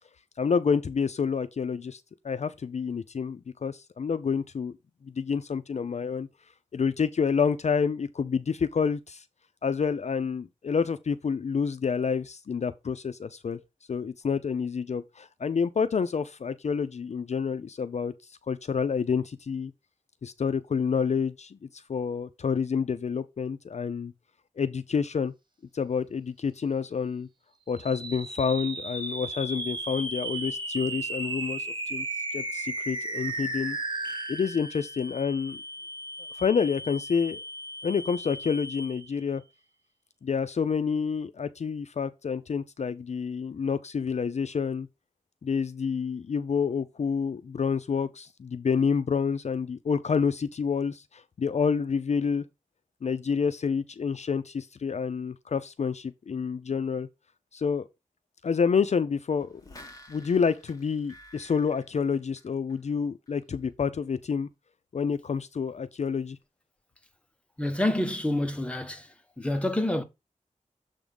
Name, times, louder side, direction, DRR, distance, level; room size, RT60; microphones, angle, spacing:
voice 1, 0.4-4.7 5.0-6.3 6.7-9.2 9.6-13.6 13.9-19.7 20.2-24.1 24.6-25.3 25.7-27.3 27.7-32.1 32.3-33.8 34.3-35.6 36.3-37.4 37.8-39.4 40.2-44.9 45.4-52.4 53.0-57.1 57.5-57.9 58.4-59.6 60.1-64.5 64.9-66.4, left 6 dB, 55° left, 0.5 m, -28 dB
sound 1, 27.7-39.2, right 2 dB, 35° right, 1.5 m, -35 dB
sound 2, 59.4-62.9 63.3-63.4, left 1 dB, 25° left, 2.0 m, -51 dB
voice 2, 67.6-69.1 69.4-70.0, left 1 dB, 10° left, 1.1 m, -27 dB
7.1 x 3.6 x 5.2 m
wide cardioid pair, 80°, 14 cm